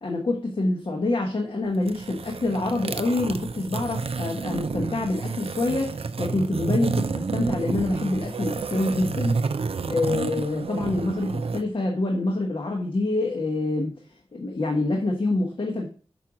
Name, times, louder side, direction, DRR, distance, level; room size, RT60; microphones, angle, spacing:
voice 1, 0.0-9.4 9.9-14.0 14.3-15.9, left 2 dB, 50° left, 1 dB, 1.1 m, -26 dB
sound 1, 1.7-11.6, right 4 dB, 60° right, 0.5 m, -30 dB
6.0 x 5.6 x 3.7 m, 0.40 s
wide cardioid pair, 90°, 11 cm